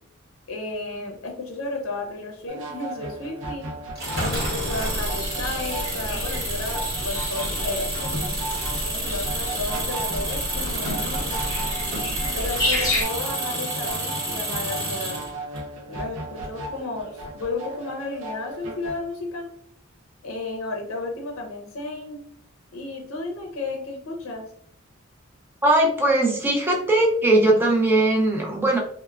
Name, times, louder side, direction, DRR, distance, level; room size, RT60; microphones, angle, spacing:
voice 1, 0.5-3.7 4.1-8.2 8.9-11.4 12.3-15.3 15.9-19.5 20.2-22.2 22.7-24.5, left 2 dB, 70° left, 2 dB, 0.5 m, -33 dB
sound 1, 2.5-19.0, right 2 dB, 70° right, 0.5 m, -36 dB
Engine, 3.9-15.6, right 1 dB, 50° right, 1.0 m, -30 dB
sound 2, 4.3-13.0, left 1 dB, 15° left, 0.8 m, -31 dB
voice 2, 25.6-28.8, right 1 dB, 10° right, 0 dB, 0.4 m, -19 dB
3.2 x 2.0 x 2.3 m, 0.63 s
head